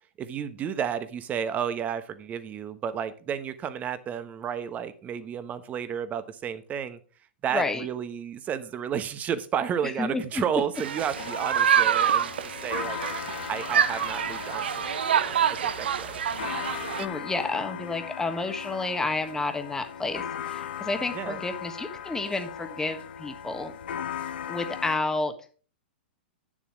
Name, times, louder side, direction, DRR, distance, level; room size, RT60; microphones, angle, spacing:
voice 1, 0.2-7.0 7.4-13.0 13.5-15.3 15.6-16.2 21.1-21.4, right 8 dB, 25° right, 12 dB, 1.0 m, -32 dB
voice 2, 7.5-7.8 10.0-10.2 17.0-23.7 24.5-25.3, left 3 dB, 10° left, 7 dB, 1.4 m, -30 dB
sound 1, 10.8-17.1, right 8 dB, 75° right, 0.7 m, -26 dB
sound 2, 11.1-25.0, left 9 dB, 70° left, 1.2 m, -38 dB
9.0 x 7.4 x 5.0 m, 0.40 s
hypercardioid pair, 115°, 6 cm